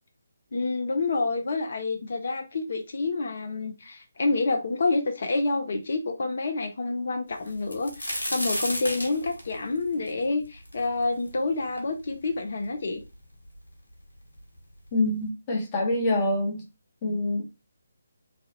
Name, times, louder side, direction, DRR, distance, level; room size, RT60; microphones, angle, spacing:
voice 1, 0.5-13.0, left 3 dB, 50° left, 0.5 m, -28 dB
sound 1, 7.5-11.3 11.8-11.9 12.6-12.7 13.0-13.7 14.6-14.7 15.0-15.2, left 1 dB, 80° left, 1.1 m, -33 dB
voice 2, 14.9-16.6 17.0-17.4, left 1 dB, 25° left, 1.0 m, -25 dB
3.1 x 2.3 x 2.8 m
figure-of-eight pair, 145°, 0 cm